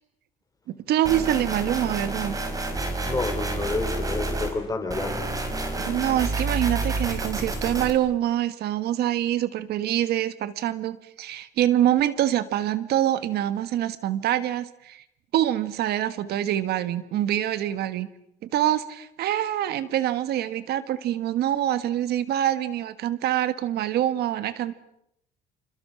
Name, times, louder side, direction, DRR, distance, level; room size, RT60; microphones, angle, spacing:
voice 1, 0.9-2.4 5.8-15.0 15.3-18.1 18.4-24.7, right 12 dB, 70° right, 13 dB, 1.5 m, -25 dB
sound 1, 1.0-4.5 4.9-7.9, right 2 dB, 20° right, 4.9 m, -29 dB
voice 2, 3.0-5.2, left 3 dB, 20° left, 6 dB, 5.1 m, -29 dB
29.0 x 28.5 x 6.1 m, 0.78 s
cardioid pair, 110°, 17 cm